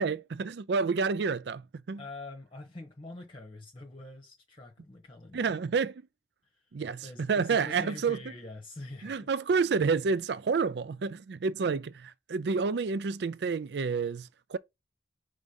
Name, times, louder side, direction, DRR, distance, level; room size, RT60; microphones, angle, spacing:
voice 1, 0.0-1.6 1.9-2.0 5.3-6.0 6.7-8.2 9.0-14.6, right 5 dB, 70° right, 0.4 m, -29 dB
voice 2, 2.0-5.5 6.5-6.6 7.0-9.3, left 2 dB, 30° left, 1.0 m, -45 dB
5.3 x 3.5 x 5.3 m
head